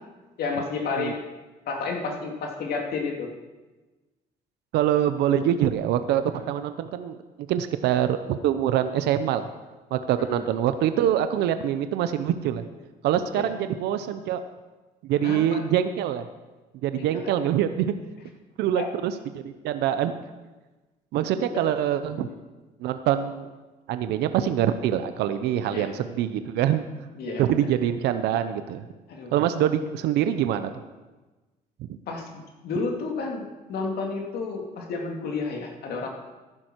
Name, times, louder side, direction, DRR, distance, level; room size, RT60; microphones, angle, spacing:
voice 1, 0.4-1.2 1.7-3.3 10.3-10.4 13.3-13.6 15.2-15.6 16.9-17.3 18.8-18.9 21.5-21.6 22.2-22.3 25.7-25.9 27.2-27.7 29.1-29.3 32.1-36.1, left 4 dB, 65° left, 1 dB, 2.7 m, -31 dB
voice 2, 4.7-6.2 6.5-7.2 7.5-9.5 9.9-12.6 13.0-14.4 15.0-16.3 16.8-17.9 18.6-20.1 21.1-22.3 22.8-23.5 23.9-26.8 27.4-28.8 29.3-30.7 31.9-32.0, right 10 dB, 80° right, 10 dB, 0.8 m, -24 dB
14.5 x 11.0 x 4.6 m, 1.2 s
cardioid pair, 110°, 17 cm